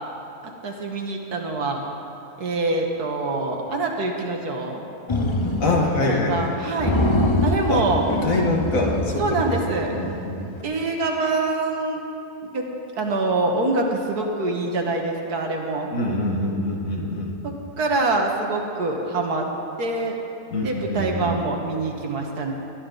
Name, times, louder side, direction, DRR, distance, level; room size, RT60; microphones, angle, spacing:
voice 1, 0.6-1.8 2.4-4.8 5.6-5.7 6.0-7.0 7.4-8.0 9.2-9.9 10.6-12.0 12.4-12.7 12.9-15.9 17.4-19.5 19.8-20.2 20.6-22.5, right 2 dB, 70° right, 1 dB, 1.9 m, -25 dB
sound 1, 5.1-6.1 6.4-6.5 6.8-10.2, left 1 dB, 35° left, 0.4 m, -24 dB
voice 2, 5.6-6.6 7.7-7.8 8.1-9.4 9.9-10.5 15.9-17.4 20.5-21.3, left 2 dB, 55° left, 0 dB, 2.0 m, -25 dB
20.5 x 12.0 x 3.9 m, 3.0 s
omnidirectional pair, 1.7 m